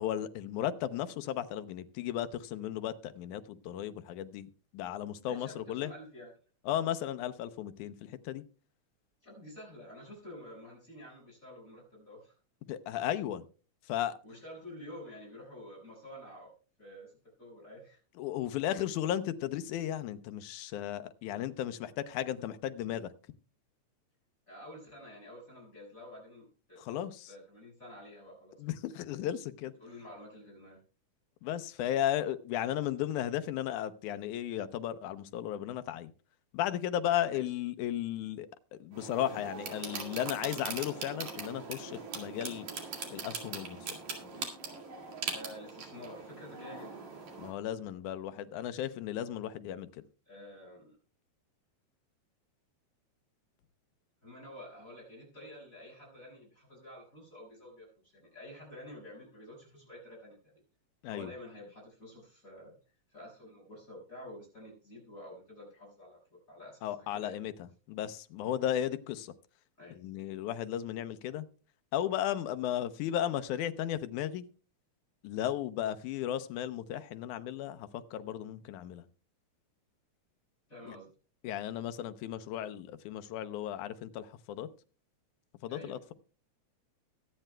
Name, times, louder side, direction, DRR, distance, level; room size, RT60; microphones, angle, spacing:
voice 1, 0.0-4.5 4.7-5.9 6.7-8.4 12.7-13.5 13.9-14.2 18.2-23.1 26.8-27.1 28.6-29.7 31.4-36.1 36.5-38.5 38.8-42.7 43.1-43.8 47.4-50.0 61.0-61.3 66.8-67.5 67.9-69.3 70.0-71.5 71.9-74.4 75.2-79.0 80.9-81.0 81.4-84.7 85.6-86.1, left 11 dB, 90° left, 12 dB, 2.2 m, -35 dB
voice 2, 5.3-6.3 9.2-12.3 14.2-16.5 16.8-17.1 17.4-18.0 24.5-28.6 29.8-30.8 37.3-37.5 45.3-46.9 50.3-51.0 54.2-60.6 61.1-67.4 69.8-70.0 80.7-81.1 85.7-86.0, left 1 dB, 25° left, -3 dB, 5.9 m, -49 dB
sound 1, 38.9-47.5, right 5 dB, 70° right, 3.5 m, -41 dB
22.5 x 9.0 x 2.2 m, 0.36 s
omnidirectional pair, 3.4 m